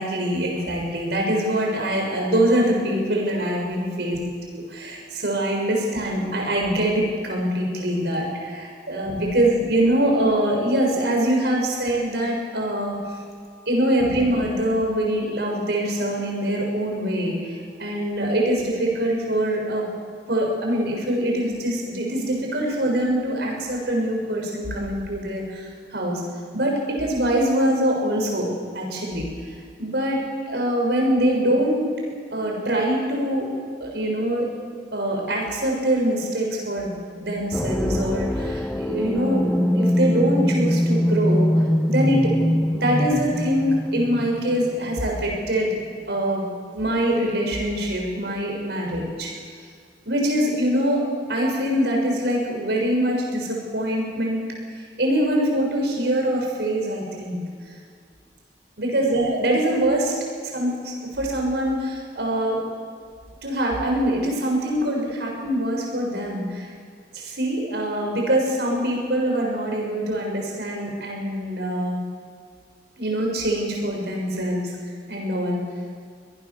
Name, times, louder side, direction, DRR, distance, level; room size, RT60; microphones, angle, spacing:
voice 1, 0.0-4.2 4.5-13.0 13.7-19.9 20.3-26.2 26.5-29.3 29.8-31.9 32.3-33.5 33.8-34.5 34.9-36.9 37.2-42.3 42.7-45.7 46.0-46.4 46.7-49.3 50.0-54.4 54.7-57.4 58.8-60.1 60.5-62.6 63.4-66.7 67.1-72.0 73.0-74.7 75.1-75.6, right 1 dB, 65° right, 0 dB, 6.8 m, -24 dB
sound 1, 37.5-45.2, left 1 dB, 5° left, 0.5 m, -23 dB
24.5 x 18.0 x 7.3 m, 2.1 s
head